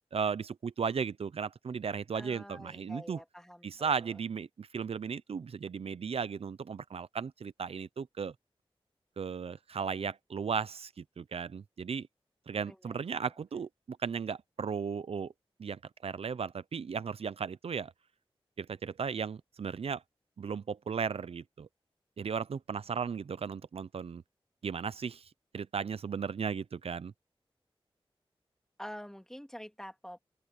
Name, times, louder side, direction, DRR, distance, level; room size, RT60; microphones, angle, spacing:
voice 1, 0.1-3.2 3.6-8.3 9.2-12.1 12.5-15.3 15.6-17.9 18.6-20.0 20.4-21.7 22.2-24.2 24.6-27.1, right 6 dB, 80° right, 0.6 m, -36 dB
voice 2, 2.1-3.9 12.7-13.2 28.8-30.2, equal, 5° left, 2.7 m, -47 dB
open air
wide cardioid pair, 80°, 10 cm